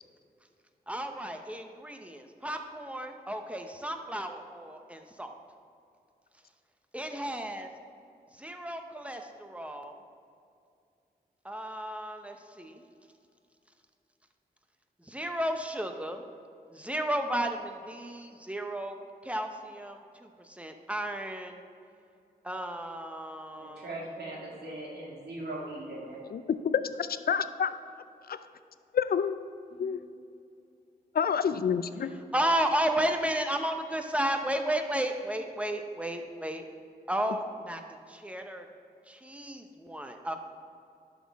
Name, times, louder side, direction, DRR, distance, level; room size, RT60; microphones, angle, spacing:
voice 1, 0.9-5.3 6.9-7.7 8.4-10.0 11.4-12.8 15.0-16.2 16.7-19.0 19.2-21.6 22.4-23.9 32.3-36.6 37.1-37.8 38.1-38.7 39.1-40.3, right 1 dB, 10° right, 5 dB, 0.8 m, -33 dB
voice 2, 23.6-26.2 29.7-29.8, right 1 dB, 80° right, -4 dB, 2.2 m, -40 dB
voice 3, 26.3-26.8 27.3-27.7 28.9-29.3 29.8-30.0 31.2-32.1, left 7 dB, 65° left, 12 dB, 0.4 m, -27 dB
11.5 x 6.2 x 3.6 m, 2.4 s
cardioid pair, 65°, 17 cm